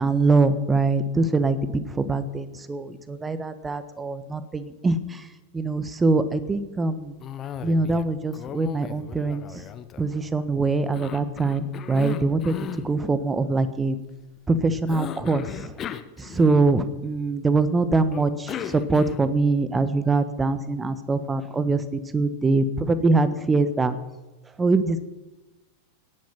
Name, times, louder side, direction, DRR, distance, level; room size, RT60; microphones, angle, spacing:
voice 1, 0.0-5.3 5.5-7.1 7.6-9.6 10.0-14.0 14.5-15.7 16.2-24.0 24.6-25.0, right 3 dB, 15° right, 13 dB, 1.3 m, -23 dB
Cough, 7.2-8.1 8.3-10.4 10.9-12.9 14.9-16.9 18.1-19.4, left 9 dB, 30° left, 1.0 m, -36 dB
17.5 x 10.5 x 5.8 m, 1.1 s
figure-of-eight pair, 90°, 0 cm